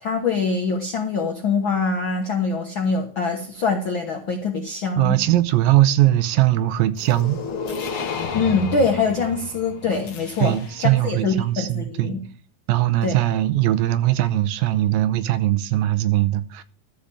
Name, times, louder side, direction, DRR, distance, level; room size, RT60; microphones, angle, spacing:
voice 1, 0.0-5.2 8.3-12.3 13.0-13.1, left 4 dB, 65° left, 1.2 m, -24 dB
voice 2, 5.0-7.4 10.4-12.1 12.7-16.6, right 14 dB, 85° right, 2.5 m, -20 dB
sound 1, 7.0-11.0, left 6 dB, 50° left, 1.8 m, -32 dB
13.5 x 5.1 x 8.7 m
omnidirectional pair, 4.2 m